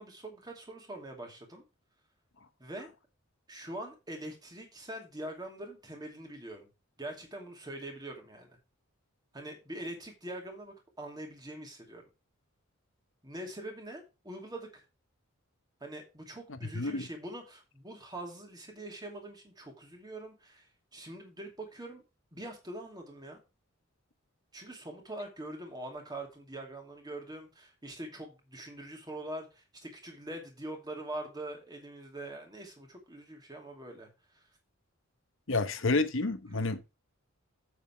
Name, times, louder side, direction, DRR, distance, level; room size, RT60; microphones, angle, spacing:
voice 1, 0.0-1.6 2.6-2.9 3.5-6.7 7.0-8.6 9.3-12.0 13.2-14.8 15.8-22.0 22.3-23.4 24.5-34.5 36.5-36.8, right 1 dB, 20° right, 2.5 m, -43 dB
voice 2, 16.7-17.1 35.5-36.9, left 3 dB, 60° left, 1.0 m, -29 dB
8.1 x 7.2 x 4.4 m
head